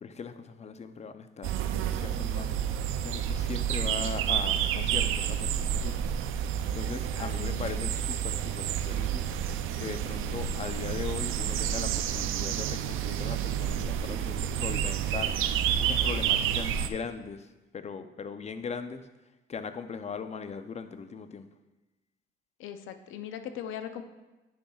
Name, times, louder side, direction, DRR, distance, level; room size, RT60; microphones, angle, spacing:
voice 1, 0.0-6.1 6.7-9.3 9.8-15.3 15.8-19.1 19.5-21.5, left 5 dB, 35° left, 10 dB, 0.5 m, -39 dB
sound 1, 1.4-16.9, right 9 dB, 90° right, 0.4 m, -29 dB
voice 2, 4.8-5.1 7.2-7.8 22.6-24.0, left 9 dB, 85° left, 8 dB, 0.6 m, -40 dB
9.6 x 6.9 x 2.3 m, 1.1 s
cardioid pair, 90°, 20 cm